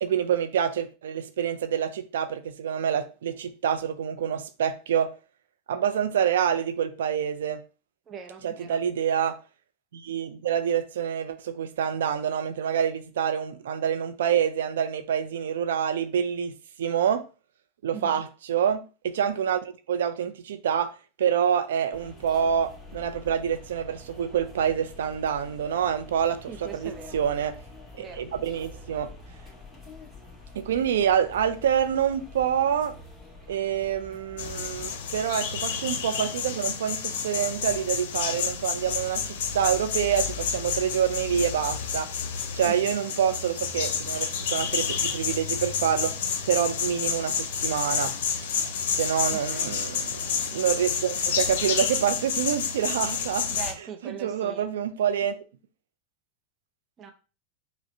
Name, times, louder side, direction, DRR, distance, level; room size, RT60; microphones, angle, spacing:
voice 1, 0.0-5.1 5.7-7.6 8.4-9.4 9.9-16.5 16.8-17.2 17.8-27.5 28.0-29.1 30.5-32.9 33.5-42.1 42.5-46.1 46.4-48.1 49.0-50.2 50.5-53.5 54.0-55.4, right 8 dB, 75° right, 0.4 m, -27 dB
voice 2, 8.1-8.8 17.9-18.2 26.5-27.2 28.0-28.3 42.6-42.8 49.3-49.8 53.5-54.7 57.0-57.1, right 7 dB, 30° right, 0.6 m, -41 dB
sound 1, 21.9-34.9, left 2 dB, 5° right, 1.6 m, -46 dB
sound 2, 34.4-53.7, left 7 dB, 65° left, 0.6 m, -30 dB
4.8 x 2.1 x 2.6 m
hypercardioid pair, 100°, 0 cm